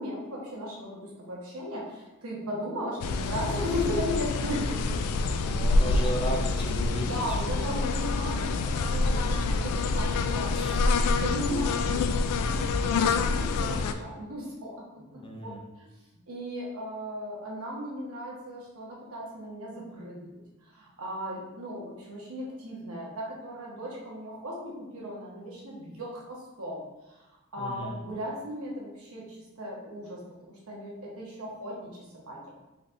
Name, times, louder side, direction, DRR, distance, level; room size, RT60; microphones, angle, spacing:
voice 1, 0.0-5.1 5.8-6.1 7.0-10.7 11.1-14.8 15.1-15.5 15.8-15.9 16.3-26.8 27.1-27.2 27.5-32.4, equal, 70° right, -4 dB, 1.2 m, -36 dB
sound 1, 3.0-13.9, left 3 dB, 90° left, 0.3 m, -27 dB
voice 2, 5.4-7.7 10.5-10.8 15.1-15.6 27.6-28.0, left 1 dB, 20° left, 0 dB, 0.4 m, -35 dB
4.1 x 3.2 x 2.6 m, 1.0 s
head